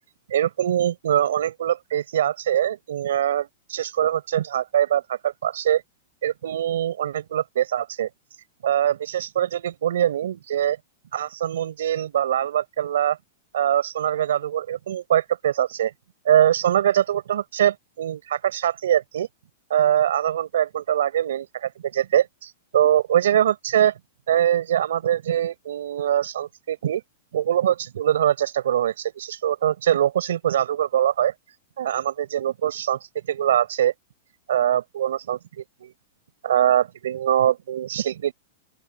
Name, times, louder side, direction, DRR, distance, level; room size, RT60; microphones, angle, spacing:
voice 1, 0.3-5.8 6.2-8.1 8.6-10.8 11.1-13.2 13.5-15.9 16.3-19.3 19.7-23.9 24.3-27.0 27.3-31.3 31.8-33.0 33.3-33.9 34.5-35.9 36.4-38.3, right 10 dB, 80° right, 5.4 m, -23 dB
open air
supercardioid pair, 155°, 0 cm